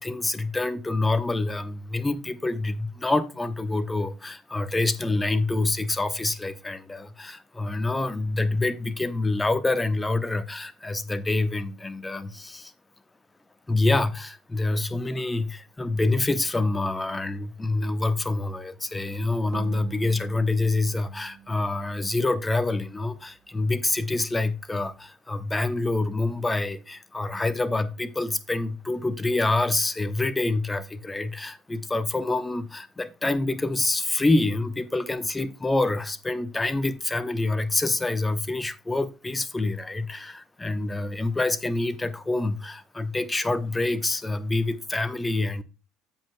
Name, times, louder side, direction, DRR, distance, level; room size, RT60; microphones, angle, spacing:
voice 1, 0.0-12.7 13.7-45.6, left 2 dB, 15° left, 0.8 m, -26 dB
sound 1, 19.5-23.0, right 11 dB, 50° right, 1.0 m, -45 dB
14.5 x 5.3 x 2.2 m
figure-of-eight pair, 60°, 0 cm